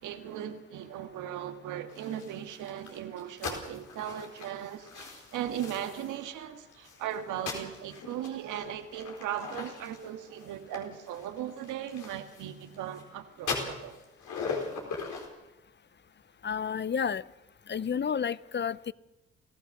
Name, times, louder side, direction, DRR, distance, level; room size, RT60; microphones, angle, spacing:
voice 1, 0.0-14.0, right 10 dB, 85° right, 7 dB, 1.8 m, -38 dB
sound 1, 1.9-6.3 6.7-13.0 13.4-15.3, left 4 dB, 80° left, 4.6 m, -40 dB
voice 2, 16.4-17.2 17.7-18.9, left 7 dB, 35° left, 19 dB, 0.7 m, -30 dB
29.0 x 15.5 x 6.6 m, 1.0 s
supercardioid pair, 50°, 30 cm